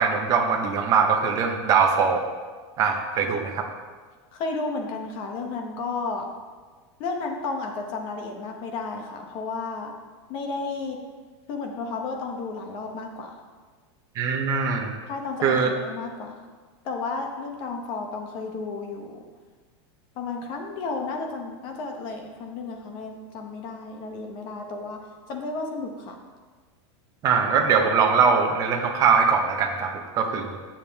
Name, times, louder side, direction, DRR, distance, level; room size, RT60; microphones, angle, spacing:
voice 1, 0.0-2.2 2.8-3.6 14.1-14.9 15.4-15.7 27.2-30.5, right 6 dB, 25° right, 2 dB, 0.8 m, -22 dB
voice 2, 4.3-6.2 7.0-9.9 10.3-11.0 11.5-13.3 15.1-16.4 16.8-19.2 20.2-25.0 25.3-26.1, left 3 dB, 35° left, 3 dB, 0.9 m, -32 dB
8.9 x 7.2 x 3.4 m, 1.4 s
supercardioid pair, 175°, 15 cm